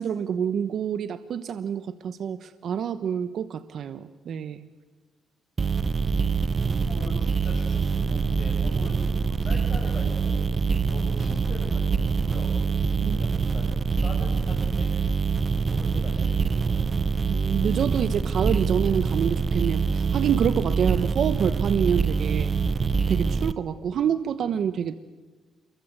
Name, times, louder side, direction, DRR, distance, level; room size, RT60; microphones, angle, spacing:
voice 1, 0.0-4.6 13.0-13.2 17.3-22.6 23.1-25.0, right 8 dB, 65° right, 11 dB, 1.0 m, -27 dB
sound 1, 5.6-23.5, right 5 dB, 35° right, 0.8 m, -25 dB
voice 2, 6.6-10.5 10.9-12.6 13.0-13.7 14.0-14.9 15.6-17.0, left 3 dB, 40° left, -3 dB, 6.7 m, -42 dB
28.0 x 23.0 x 8.1 m, 1.3 s
cardioid pair, 90°, 0 cm